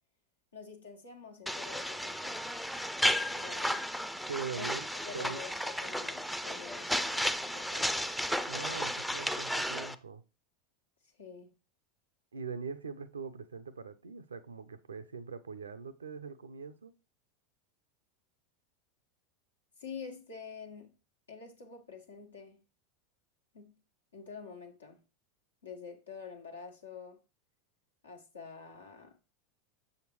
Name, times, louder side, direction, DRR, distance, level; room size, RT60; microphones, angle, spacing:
voice 1, 0.5-2.4 3.3-3.8 4.6-4.7 5.0-8.2 11.2-11.5 19.8-20.9 21.3-22.6 23.5-23.8 24.1-25.0 25.6-27.2 28.0-29.1, left 5 dB, 85° left, 1.3 m, -47 dB
sound 1, 1.5-9.9, equal, ahead, 0.4 m, -33 dB
voice 2, 4.3-4.9 5.1-5.4 8.5-10.2 12.3-16.9, right 5 dB, 85° right, 0.5 m, -42 dB
6.7 x 6.4 x 3.0 m
hypercardioid pair, 85°, 0 cm